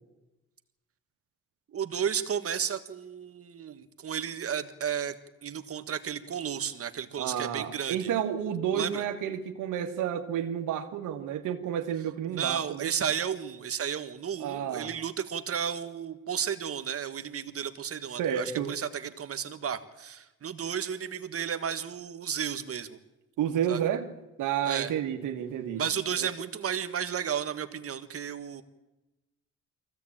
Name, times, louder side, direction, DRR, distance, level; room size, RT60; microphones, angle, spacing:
voice 1, 1.7-5.1 5.4-8.1 8.7-9.0 12.3-23.0 23.7-23.8 24.6-24.9 25.8-28.6, right 8 dB, 50° right, 10 dB, 1.6 m, -33 dB
voice 2, 7.2-12.9 14.4-15.0 18.2-18.7 23.4-24.1 24.4-25.9 26.2-26.3, right 9 dB, 85° right, 6 dB, 1.8 m, -31 dB
23.0 x 16.0 x 8.8 m, 1.1 s
cardioid pair, 90°, 30 cm